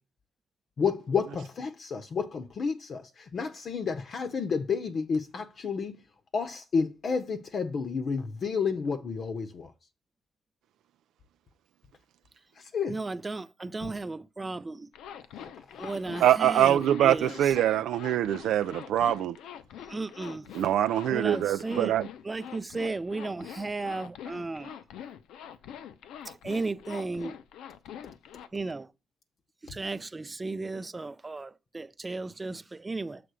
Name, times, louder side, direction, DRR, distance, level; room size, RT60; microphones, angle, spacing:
voice 1, 0.8-5.9 6.3-9.7 12.6-13.0 13.8-13.9 15.4-15.9, left 5 dB, 50° left, 0.8 m, -31 dB
voice 2, 12.9-14.9 15.8-17.5 19.8-20.5 21.1-22.0 22.2-24.8 26.3-27.4 28.5-28.9 29.6-33.2, right 3 dB, 20° right, 0.5 m, -35 dB
Zipper (clothing), 14.9-28.5, left 9 dB, 85° left, 0.7 m, -44 dB
voice 3, 16.2-19.3 20.5-22.0, right 11 dB, 80° right, 0.4 m, -24 dB
6.8 x 3.7 x 6.2 m
cardioid pair, 90°, 0 cm